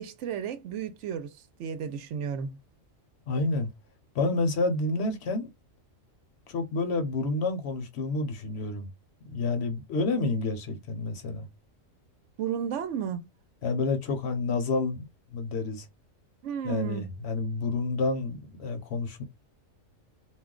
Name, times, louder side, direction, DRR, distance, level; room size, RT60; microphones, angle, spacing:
voice 1, 0.0-1.3 1.6-2.6 12.4-13.2 16.4-17.1, right 8 dB, 70° right, 0.9 m, -33 dB
voice 2, 3.3-3.7 4.1-5.5 6.5-8.9 9.3-11.5 13.6-15.0 15.3-15.9 16.6-19.2, left 3 dB, 60° left, 0.9 m, -29 dB
2.4 x 2.2 x 3.6 m
omnidirectional pair, 1.4 m